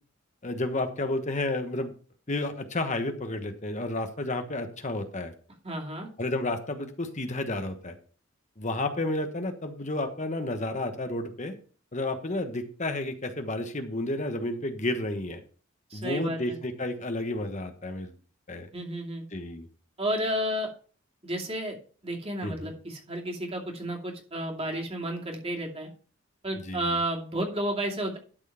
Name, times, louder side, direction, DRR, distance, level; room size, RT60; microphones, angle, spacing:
voice 1, 0.4-1.9 2.3-5.3 6.2-7.9 8.6-11.5 11.9-15.4 15.9-18.1 18.5-18.7 19.3-19.7 22.4-22.7 26.6-27.0, left 2 dB, 35° left, 7 dB, 1.2 m, -31 dB
voice 2, 5.6-6.1 15.9-16.6 18.7-19.2 20.0-20.7 21.2-21.8 22.0-25.9 26.4-28.2, right 1 dB, 30° right, 0 dB, 2.5 m, -32 dB
12.0 x 4.5 x 5.7 m, 0.40 s
head